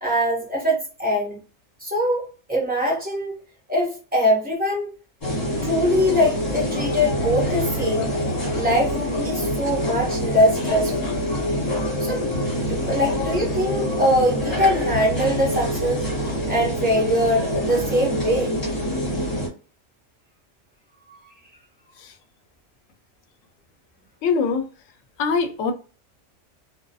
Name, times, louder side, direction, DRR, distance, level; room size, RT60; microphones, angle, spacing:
voice 1, 0.0-1.4 1.8-3.4 3.7-4.9 5.6-8.1 8.5-10.9 12.0-12.3 12.6-16.0 16.5-18.6 21.1-21.2, equal, 10° right, 0.9 m, -22 dB
sound 1, 5.2-19.5, equal, 35° left, 1.3 m, -25 dB
voice 2, 24.2-24.7 25.2-25.7, left 5 dB, 80° left, 0.9 m, -22 dB
2.4 x 2.3 x 2.5 m
omnidirectional pair, 1.3 m